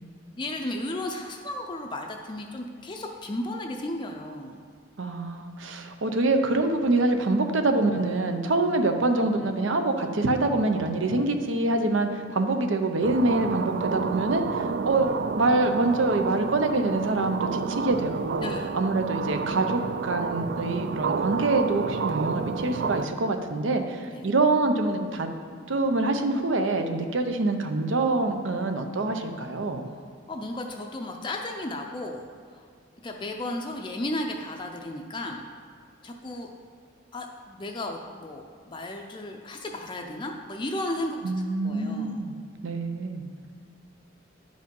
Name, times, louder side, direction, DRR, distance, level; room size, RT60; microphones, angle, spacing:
voice 1, 0.4-4.6 18.4-18.7 24.1-24.3 30.3-32.7 33.0-35.5 36.0-36.5 37.1-41.3 41.6-42.2, left 1 dB, 25° left, 2 dB, 0.4 m, -34 dB
voice 2, 5.0-18.5 18.7-25.3 25.7-29.9 41.2-42.4 42.6-43.3, right 2 dB, 80° right, 6 dB, 0.7 m, -25 dB
sound 1, 13.0-23.0, right 5 dB, 60° right, 0.3 m, -30 dB
10.0 x 5.2 x 5.3 m, 2.1 s
head